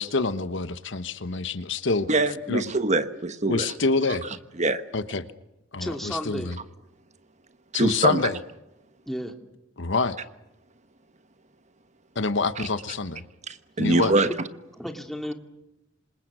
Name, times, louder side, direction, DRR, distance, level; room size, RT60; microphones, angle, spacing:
voice 1, 0.0-2.1 2.5-2.6 3.5-4.2 4.9-5.2 5.7-6.6 7.7-8.4 9.8-10.2 12.1-13.2 13.8-14.1, left 3 dB, 65° left, 12 dB, 1.2 m, -26 dB
voice 2, 2.1-3.7 4.2-4.3 4.6-4.8 7.7-8.2 12.6-12.7 13.5-14.3, right 2 dB, 35° right, 10 dB, 1.3 m, -24 dB
voice 3, 5.8-6.5 9.1-9.3 14.2-14.3 14.8-15.3, equal, ahead, 4 dB, 2.5 m, -32 dB
28.0 x 26.5 x 6.3 m, 0.93 s
head